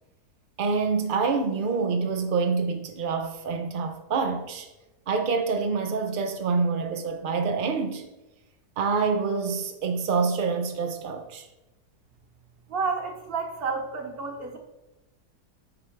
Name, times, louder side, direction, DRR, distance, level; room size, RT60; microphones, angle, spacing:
voice 1, 0.6-4.7 5.1-8.1 8.8-11.5, right 4 dB, 80° right, 0.4 m, -26 dB
voice 2, 12.7-14.6, right 4 dB, 40° right, 1.0 m, -30 dB
9.8 x 3.3 x 4.5 m
omnidirectional pair, 1.7 m